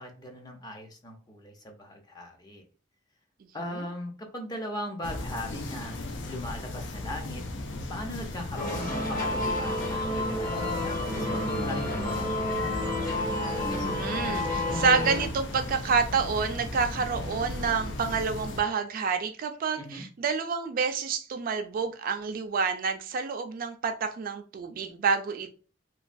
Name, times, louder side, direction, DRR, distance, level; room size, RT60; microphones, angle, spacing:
voice 1, 0.0-2.6 3.5-6.0 6.3-7.4 7.9-10.5 10.8-12.6 19.8-20.0, left 1 dB, 20° left, 0.6 m, -39 dB
sound 1, 5.0-18.6, left 2 dB, 70° left, 0.5 m, -36 dB
sound 2, 8.6-15.3, left 1 dB, 45° left, 1.2 m, -30 dB
voice 2, 13.7-25.6, right 5 dB, 50° right, 0.3 m, -28 dB
3.1 x 2.2 x 2.5 m
head